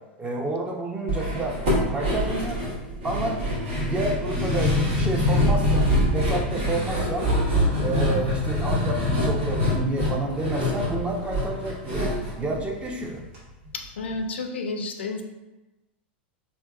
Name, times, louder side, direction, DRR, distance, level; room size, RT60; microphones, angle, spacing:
voice 1, 0.2-1.6 1.9-2.6 3.0-3.4 3.8-7.3 7.8-13.2, right 2 dB, 20° right, 1 dB, 0.6 m, -29 dB
sound 1, 1.1-13.4 13.6-13.7 14.1-14.2, left 1 dB, 70° right, 1.2 m, -25 dB
voice 2, 13.7-15.2, left 3 dB, 85° left, 4 dB, 0.4 m, -31 dB
3.3 x 3.0 x 2.3 m, 1.0 s
hypercardioid pair, 105°, 6 cm